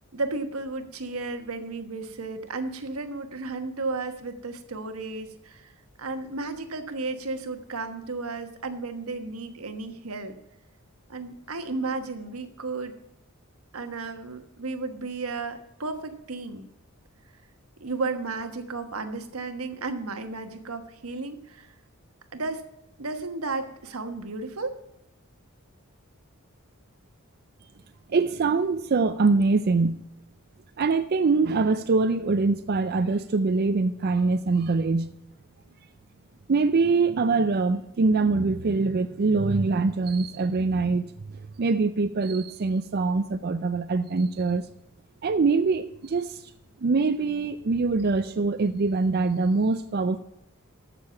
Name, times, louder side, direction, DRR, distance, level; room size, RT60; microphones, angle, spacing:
voice 1, 0.1-5.7 6.0-10.4 11.1-12.9 13.7-16.7 17.8-21.7 22.3-22.7 23.0-24.7, right 3 dB, 90° right, 7 dB, 1.3 m, -33 dB
voice 2, 28.1-30.0 30.8-35.1 36.5-41.1 41.6-44.6 45.2-46.4 46.8-50.2, right 4 dB, 45° right, 10 dB, 0.5 m, -23 dB
13.5 x 6.8 x 5.8 m, 0.85 s
head